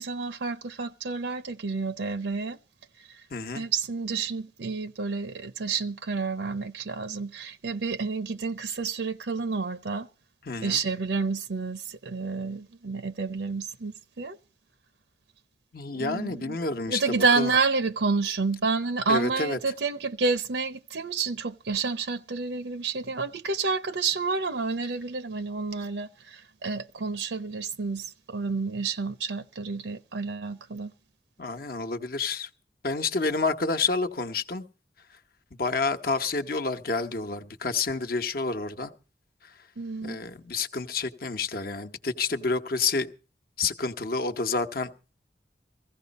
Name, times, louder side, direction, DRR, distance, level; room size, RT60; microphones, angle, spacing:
voice 1, 0.0-2.6 3.0-3.2 3.5-10.1 10.6-14.4 15.9-16.6 16.9-30.9 39.8-40.2, right 4 dB, 75° right, 0.6 m, -29 dB
voice 2, 3.3-3.7 10.5-10.8 15.7-17.5 19.1-19.6 31.4-32.5 32.8-34.6 35.6-38.9 40.0-43.1 43.6-44.9, left 4 dB, 55° left, 1.0 m, -29 dB
16.0 x 15.0 x 4.1 m
head